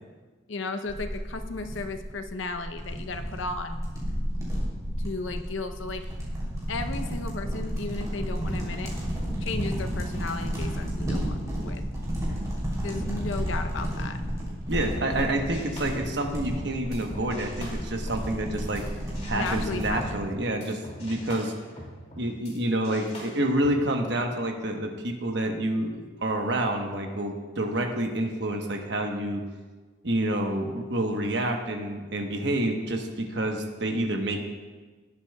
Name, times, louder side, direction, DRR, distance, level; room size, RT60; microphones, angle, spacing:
voice 1, 0.5-3.8 5.0-6.1 6.7-8.9 9.4-11.8 12.8-14.2 19.3-20.2, left 3 dB, 75° left, 7 dB, 0.7 m, -35 dB
sound 1, 0.9-20.2, equal, 15° right, 3.0 m, -32 dB
voice 2, 14.7-18.8 19.3-21.5 22.2-29.4 30.0-34.4, right 1 dB, 60° right, 3 dB, 1.1 m, -28 dB
sound 2, 15.5-18.9 19.1-22.6 22.8-23.8, left 1 dB, 35° left, 2.4 m, -44 dB
18.5 x 8.4 x 2.3 m, 1.4 s
head